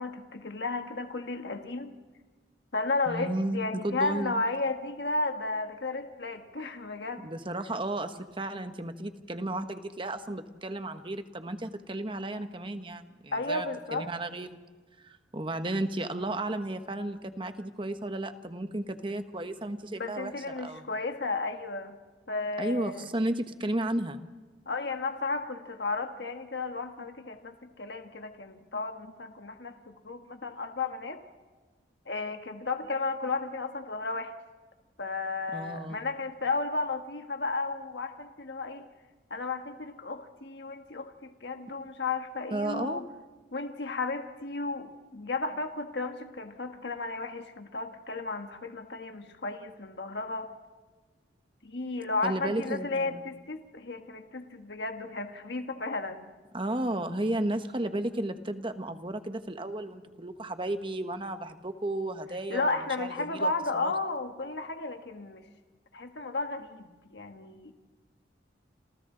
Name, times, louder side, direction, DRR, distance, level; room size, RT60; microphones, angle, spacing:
voice 1, 0.0-2.0 2.7-7.3 13.3-14.1 20.0-22.0 22.3-23.0 24.7-31.2 32.1-34.3 35.0-38.9 39.3-43.0 43.5-50.5 51.6-56.3 62.5-65.5 65.9-66.8 67.1-67.7, left 3 dB, 65° left, 6 dB, 1.4 m, -33 dB
voice 2, 3.1-4.3 7.2-14.6 15.0-20.8 22.6-24.2 35.5-36.0 42.5-43.0 52.2-53.3 56.5-63.5 63.8-63.9, right 1 dB, 25° right, 8 dB, 1.1 m, -33 dB
28.0 x 27.5 x 3.9 m, 1.4 s
head